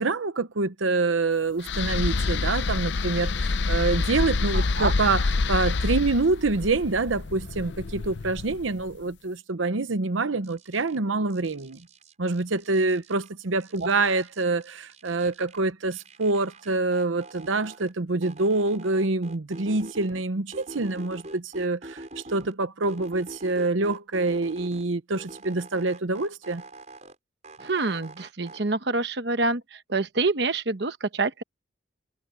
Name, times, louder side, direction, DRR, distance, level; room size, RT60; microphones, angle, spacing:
voice 1, 0.0-11.8 12.2-26.6, right 3 dB, 85° right, 0.9 m, -26 dB
sound 1, 1.6-8.8, left 3 dB, 65° left, 0.6 m, -27 dB
sound 2, 10.4-11.0 11.3-13.3 13.6-15.6 15.9-17.9 18.2-20.2 20.5-22.5 22.8-24.8 25.1-27.2 27.4-28.6, right 2 dB, 35° right, 5.7 m, -44 dB
voice 2, 27.6-31.4, right 3 dB, 60° right, 1.1 m, -26 dB
head